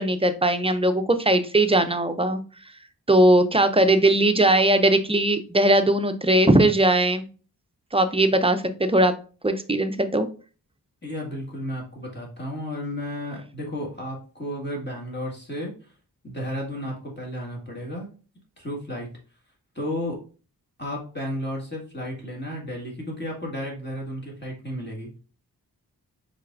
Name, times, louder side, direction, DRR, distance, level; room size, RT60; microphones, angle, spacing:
voice 1, 0.0-2.4 3.1-7.3 7.9-9.1 9.4-10.3, right 1 dB, 15° right, 8 dB, 0.5 m, -19 dB
voice 2, 11.0-15.7 16.2-18.1 18.6-19.1 19.8-20.2 20.8-25.2, equal, 25° left, -3 dB, 1.8 m, -33 dB
4.5 x 3.4 x 2.4 m, 0.37 s
cardioid pair, 45°, 40 cm